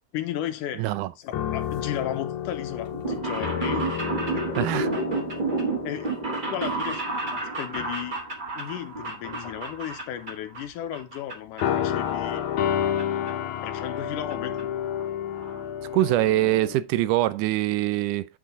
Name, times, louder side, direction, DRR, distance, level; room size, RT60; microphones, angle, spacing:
voice 1, 0.1-3.9 4.3-4.5 5.8-6.1 6.5-7.0 7.6-8.2 8.6-12.4 13.6-14.7, left 11 dB, 90° left, 2.4 m, -34 dB
voice 2, 0.8-1.1 4.6-4.9 15.9-18.3, right 16 dB, 85° right, 2.2 m, -23 dB
sound 1, 1.3-7.4 7.8-8.0 9.0-9.7 11.6-16.8, left 9 dB, 75° left, 2.3 m, -30 dB
sound 2, 2.9-10.6 10.9-11.6 11.9-13.0 13.3-13.4 14.3-14.4 14.6-14.7 14.9-15.0 15.3-15.6 16.0-16.1 16.3-16.4, right 3 dB, 40° right, 0.6 m, -31 dB
8.4 x 4.6 x 3.7 m
omnidirectional pair, 3.6 m